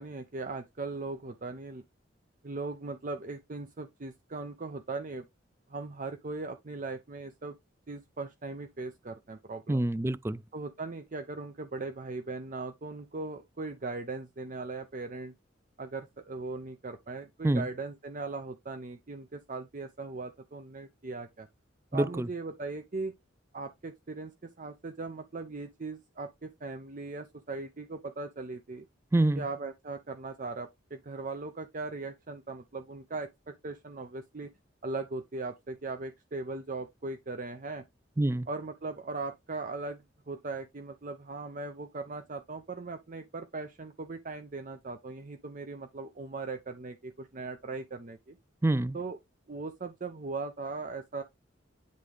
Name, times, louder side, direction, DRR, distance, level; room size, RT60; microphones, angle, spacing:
voice 1, 0.0-1.8 2.4-5.3 5.7-7.6 7.9-9.9 10.5-15.3 15.8-21.5 21.9-23.1 23.5-28.8 29.3-34.5 34.8-37.8 38.5-48.4 48.9-49.2 49.5-51.2, right 3 dB, 45° right, 0.6 m, -39 dB
voice 2, 9.7-10.4 17.4-17.7 21.9-22.3 29.1-29.5 38.2-38.5 48.6-49.0, right 1 dB, 15° right, 0.3 m, -26 dB
9.4 x 3.7 x 3.4 m
head